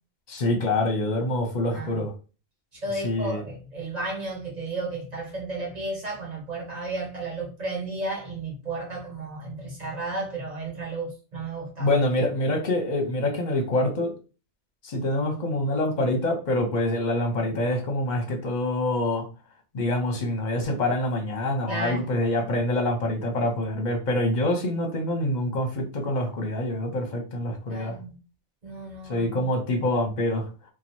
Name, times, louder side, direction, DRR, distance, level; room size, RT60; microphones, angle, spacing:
voice 1, 0.3-2.1 3.0-3.4 11.8-14.1 14.8-19.2 19.7-28.0 29.1-30.4, left 1 dB, 45° left, 0.9 m, -26 dB
voice 2, 1.7-2.0 2.8-11.9 21.7-22.1 27.7-28.1 28.6-29.5, right 2 dB, 35° right, 1.6 m, -33 dB
3.0 x 2.3 x 4.2 m
omnidirectional pair, 1.2 m